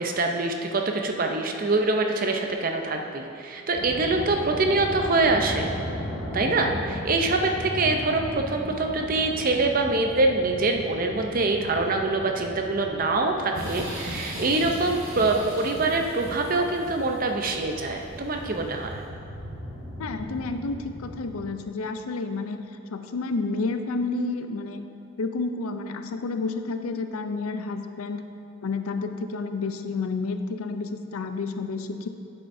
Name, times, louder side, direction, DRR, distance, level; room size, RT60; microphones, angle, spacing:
voice 1, 0.0-5.7 6.3-19.0, right 3 dB, 40° right, 3 dB, 0.6 m, -25 dB
sound 1, 3.7-21.4, equal, ahead, 1.6 m, -37 dB
sound 2, 13.5-18.7, equal, 80° right, 1.8 m, -38 dB
voice 2, 20.0-22.6 22.9-24.8 25.2-28.2 28.6-32.1, left 3 dB, 80° left, 8 dB, 0.5 m, -30 dB
9.5 x 7.9 x 2.6 m, 2.8 s
head